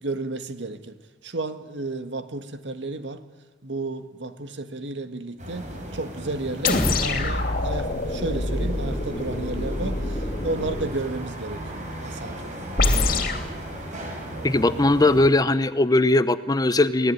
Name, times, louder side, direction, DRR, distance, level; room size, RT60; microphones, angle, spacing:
voice 1, 0.0-1.0 1.2-3.2 3.6-5.7 5.9-12.5, right 2 dB, 85° right, 9 dB, 1.7 m, -32 dB
sound 1, 5.4-15.3, right 1 dB, 45° right, 6.6 m, -36 dB
sound 2, 6.6-10.9 12.8-13.5, left 2 dB, 50° left, 2.8 m, -25 dB
voice 2, 14.4-17.1, left 2 dB, 20° left, 13 dB, 0.8 m, -19 dB
25.0 x 17.5 x 9.5 m, 1.3 s
head